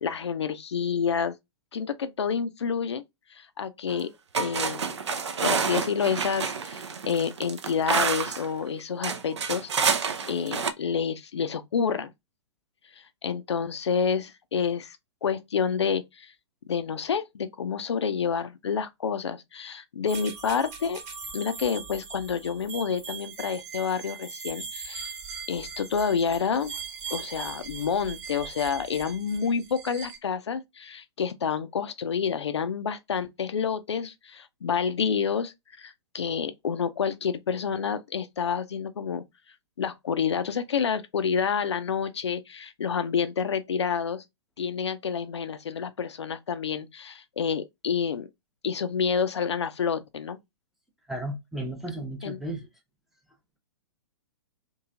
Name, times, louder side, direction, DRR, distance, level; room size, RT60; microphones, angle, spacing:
voice 1, 0.0-1.4 1.7-3.0 3.3-4.1 4.4-5.0 5.4-12.1 13.2-16.3 16.7-21.0 21.3-25.1 25.5-26.7 27.1-39.2 39.8-44.2 44.6-48.3 48.6-50.4 52.2-52.4, left 6 dB, 70° left, 0.4 m, -29 dB
sound 1, 3.9-4.0 4.3-8.5 9.0-10.7, right 5 dB, 70° right, 0.5 m, -28 dB
sound 2, 20.1-30.2, right 6 dB, 35° right, 1.0 m, -40 dB
voice 2, 51.1-52.7, right 1 dB, ahead, 0.6 m, -34 dB
3.0 x 2.6 x 2.4 m
figure-of-eight pair, 115°, 15 cm